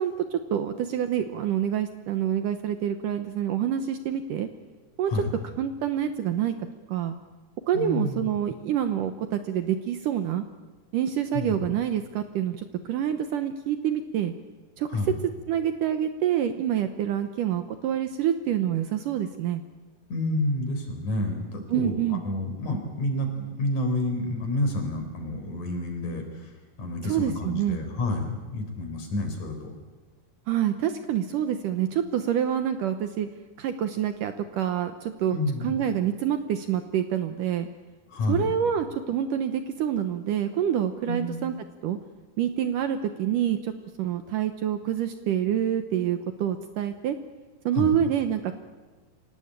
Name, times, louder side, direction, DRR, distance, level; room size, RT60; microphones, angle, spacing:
voice 1, 0.0-4.5 5.0-5.1 5.6-6.5 6.9-7.2 7.7-10.4 10.9-14.3 14.8-14.9 15.5-19.6 21.7-22.2 27.0-27.8 30.5-33.3 33.6-35.4 35.6-37.7 38.3-41.5 41.8-42.0 42.4-43.7 44.0-47.2 47.7-48.6, right 10 dB, 75° right, 8 dB, 2.0 m, -27 dB
voice 2, 7.7-8.3 11.3-11.5 14.9-15.1 20.1-29.7 35.3-35.8 38.1-38.5 41.1-41.3 47.7-48.0, left 1 dB, 45° left, 5 dB, 5.1 m, -29 dB
25.5 x 18.0 x 8.9 m, 1.3 s
omnidirectional pair, 4.8 m